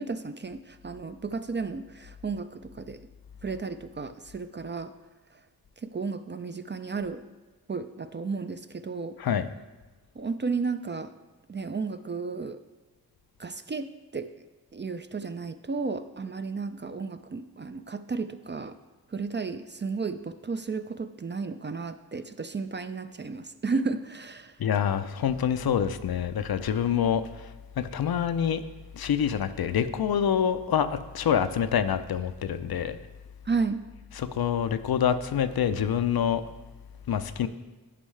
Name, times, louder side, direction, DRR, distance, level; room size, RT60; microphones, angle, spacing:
voice 1, 0.0-3.0 3.4-4.9 5.8-7.2 7.7-9.2 10.2-11.1 11.5-12.6 13.4-13.9 14.1-14.3 14.7-18.8 19.1-24.6 33.5-33.8, right 4 dB, 30° right, 10 dB, 0.4 m, -33 dB
voice 2, 24.6-28.6 28.9-33.0 34.1-36.4 37.1-37.5, left 8 dB, 65° left, 11 dB, 0.5 m, -26 dB
9.8 x 5.3 x 3.2 m, 1.3 s
cardioid pair, 45°, 39 cm